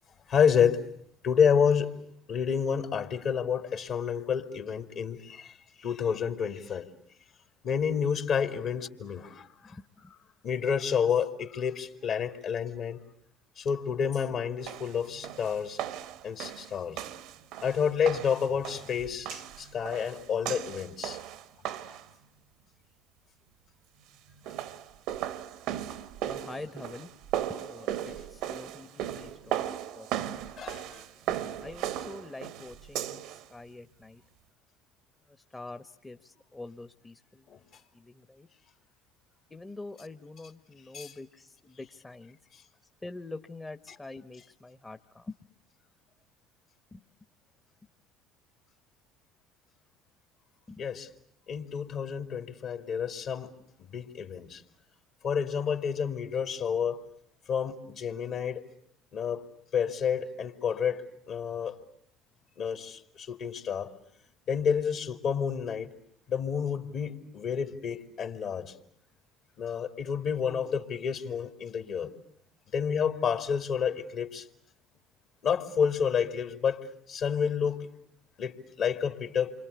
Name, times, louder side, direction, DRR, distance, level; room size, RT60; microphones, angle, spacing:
voice 1, 0.3-0.8 1.2-2.0 2.3-6.9 7.6-9.8 10.4-13.0 13.6-15.8 16.2-17.0 17.6-21.2 21.9-22.0 30.6-31.0 37.5-37.6 40.9-41.1 50.8-51.1 51.5-53.5 53.8-54.6 55.2-57.0 57.5-58.6 59.1-59.4 59.7-61.8 62.6-63.9 64.5-65.9 66.3-68.7 69.6-72.1 72.7-74.5 75.4-77.9 78.4-79.5, left 7 dB, 55° left, 2.7 m, -29 dB
voice 2, 9.7-10.1 26.2-27.1 27.5-29.6 29.9-30.4 31.1-34.2 35.5-37.4 37.9-38.5 39.5-42.4 43.0-45.3 46.9-47.0 50.7-50.8, left 2 dB, 15° left, 1.2 m, -45 dB
sound 1, 14.7-22.1 24.3-33.4, right 11 dB, 65° right, 1.1 m, -37 dB
28.5 x 25.0 x 8.2 m
hypercardioid pair, 65°, 0 cm